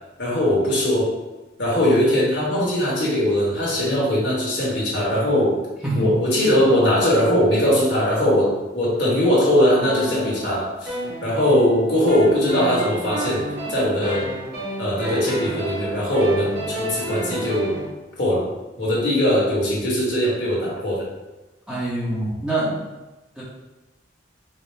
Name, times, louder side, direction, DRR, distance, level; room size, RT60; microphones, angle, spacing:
voice 1, 0.2-1.1 1.6-5.6 5.9-10.9 11.2-14.3 14.8-17.8 18.2-18.5 18.8-21.1, equal, 60° left, -5 dB, 1.2 m, -20 dB
sound 1, 9.8-11.7 12.1-17.9, right 1 dB, 60° right, 1.2 m, -30 dB
voice 2, 21.7-22.8 23.4-23.5, right 1 dB, 5° right, -8 dB, 0.8 m, -24 dB
4.1 x 2.1 x 3.3 m, 1.1 s
head